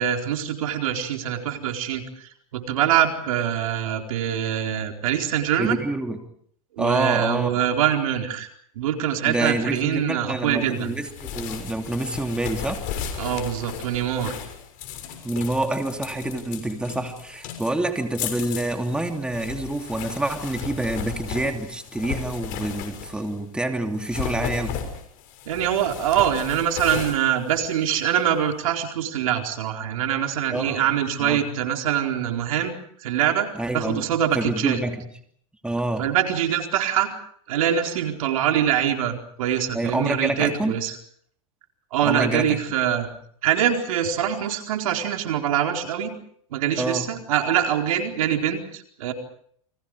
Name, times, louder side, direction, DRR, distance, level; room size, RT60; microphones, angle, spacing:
voice 1, 0.0-5.8 6.8-8.5 8.8-11.0 13.2-14.4 25.5-32.7 33.0-34.8 36.0-37.2 37.5-40.9 41.9-43.1 43.4-46.1 46.5-49.1, right 10 dB, 75° right, 3 dB, 4.4 m, -24 dB
voice 2, 5.6-6.2 6.8-7.5 9.2-12.8 15.2-24.8 30.5-30.8 31.2-31.4 33.5-34.1 34.3-35.1 35.6-36.1 39.7-40.7 42.0-42.6 46.8-47.1, right 1 dB, 5° right, 4 dB, 2.9 m, -27 dB
sound 1, 10.7-23.4 23.9-28.2, left 8 dB, 50° left, 6.5 m, -35 dB
30.0 x 24.5 x 5.0 m, 0.63 s
hypercardioid pair, 125°, 18 cm